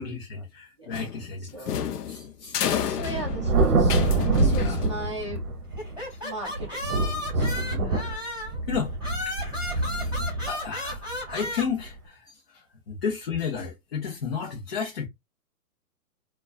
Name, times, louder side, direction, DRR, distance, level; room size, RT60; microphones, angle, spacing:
voice 1, 0.0-2.7 4.4-4.8 6.1-6.2 7.4-8.2 8.7-9.3 9.7-10.1 10.4-11.0 11.3-15.1, left 6 dB, 40° left, 0.6 m, -33 dB
sound 1, 0.9-5.4, left 9 dB, 85° left, 0.6 m, -31 dB
voice 2, 2.7-5.4 6.2-6.9 7.3-8.0, right 1 dB, 20° right, 0.4 m, -38 dB
Thunder, 3.0-6.1 6.6-11.9, right 3 dB, 65° right, 0.8 m, -26 dB
sound 2, 5.8-8.6 9.0-11.7, left 1 dB, ahead, 1.2 m, -34 dB
2.3 x 2.3 x 2.3 m
hypercardioid pair, 160°, 46 cm